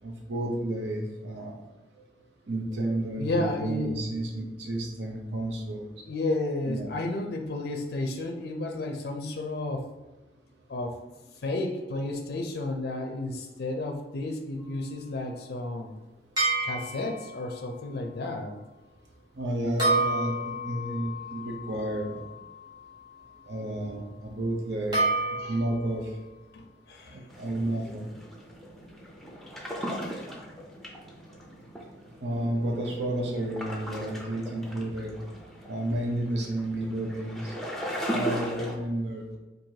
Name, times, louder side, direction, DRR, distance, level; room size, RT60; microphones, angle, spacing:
voice 1, 0.0-1.5 2.5-5.9 6.7-6.9 19.4-22.2 23.5-25.0 25.3-26.1 27.1-28.1 32.2-35.1 35.7-37.5 38.1-39.4, right 1 dB, 85° right, 1 dB, 0.6 m, -31 dB
voice 2, 3.1-4.0 6.1-9.9 10.7-11.0 11.3-15.9 16.6-18.6 25.0-25.6 26.5-26.6 26.9-27.2 27.6-27.9, left 2 dB, 60° left, 3 dB, 0.4 m, -32 dB
sound 1, 16.4-17.4 19.8-22.9 24.9-25.8, right 2 dB, 25° right, 1.3 m, -29 dB
sound 2, 27.3-38.8, equal, ahead, 0.5 m, -38 dB
4.6 x 2.6 x 2.7 m, 1.1 s
head